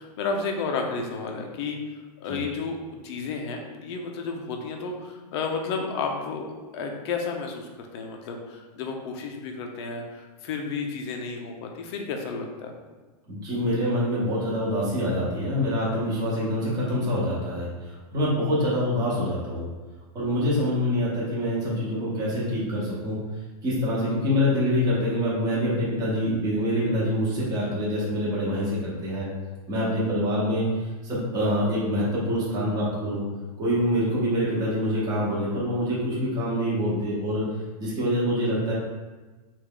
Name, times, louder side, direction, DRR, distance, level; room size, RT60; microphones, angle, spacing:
voice 1, 0.0-6.5 6.7-12.7, left 4 dB, 40° left, 2 dB, 0.5 m, -32 dB
voice 2, 13.3-19.7 20.1-23.2 23.6-29.3 29.7-30.7 31.0-33.2 33.6-37.4 37.8-38.7, equal, 20° right, -7 dB, 0.9 m, -25 dB
3.4 x 2.4 x 3.5 m, 1.2 s
supercardioid pair, 155°, 20 cm